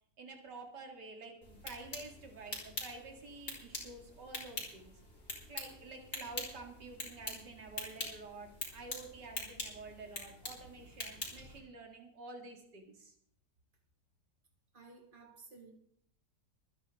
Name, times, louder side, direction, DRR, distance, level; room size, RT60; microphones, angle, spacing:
voice 1, 0.2-4.9 5.5-13.1, right 3 dB, 85° right, 2 dB, 2.6 m, -49 dB
sound 1, 1.4-11.6, left 2 dB, 40° left, 3.8 m, -45 dB
voice 2, 14.7-15.7, right 4 dB, 30° right, 0 dB, 2.7 m, -55 dB
24.0 x 9.7 x 3.5 m, 0.67 s
omnidirectional pair, 1.8 m